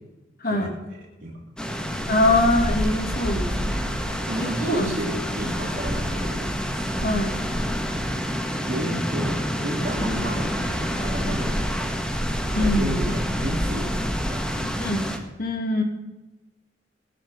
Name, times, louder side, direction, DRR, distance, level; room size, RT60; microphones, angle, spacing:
voice 1, 0.4-0.7 2.1-3.9 4.4-5.0 7.0-7.3 12.5-13.1 14.8-15.1 15.4-15.8, left 2 dB, 55° left, 3 dB, 2.4 m, -23 dB
sound 1, 1.6-15.2, equal, 5° left, 1.5 m, -27 dB
voice 2, 4.0-6.9 7.4-7.6 8.7-11.9 12.5-13.9 14.3-14.7, right 1 dB, 50° right, -6 dB, 3.3 m, -32 dB
24.0 x 11.0 x 3.7 m, 1.1 s
head